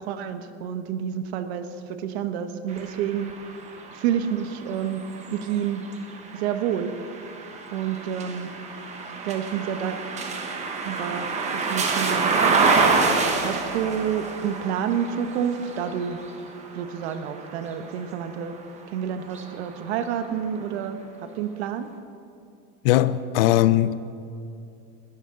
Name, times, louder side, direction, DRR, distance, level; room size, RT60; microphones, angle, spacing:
voice 1, 0.0-5.9 6.3-6.9 7.7-8.5 9.2-10.0 10.8-11.3 11.5-12.6 13.4-16.2 16.7-18.6 18.9-21.9, right 8 dB, 65° right, 1.2 m, -29 dB
sound 1, 2.7-18.6 19.2-20.4, right 4 dB, 20° right, 1.2 m, -28 dB
voice 2, 22.8-23.9, left 14 dB, 55° left, 0.5 m, -19 dB
20.5 x 12.5 x 3.9 m
supercardioid pair, 160°, 34 cm